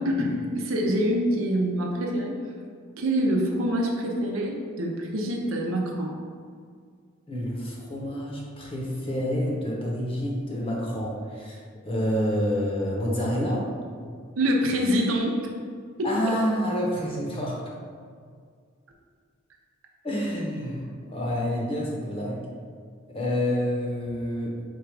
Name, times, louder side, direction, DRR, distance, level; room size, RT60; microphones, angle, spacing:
voice 1, 0.0-2.4 3.0-6.1 14.4-15.5 16.0-16.1, equal, 75° right, 0 dB, 0.7 m, -25 dB
voice 2, 7.3-13.7 16.0-17.6 20.0-22.4 23.1-24.6, equal, 25° left, -3 dB, 0.8 m, -28 dB
4.7 x 2.4 x 4.7 m, 2.1 s
head